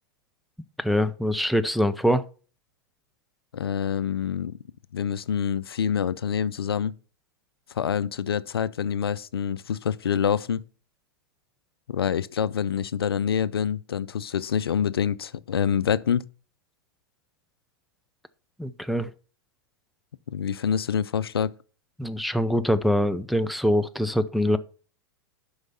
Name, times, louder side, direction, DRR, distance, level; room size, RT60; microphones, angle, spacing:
voice 1, 0.8-2.2 18.6-19.1 22.0-24.6, equal, ahead, 0.5 m, -24 dB
voice 2, 3.5-4.6 4.9-7.0 7.7-10.6 11.9-16.2 20.3-21.5, left 8 dB, 85° left, 0.5 m, -26 dB
8.0 x 5.6 x 5.4 m
hypercardioid pair, 105°, 12 cm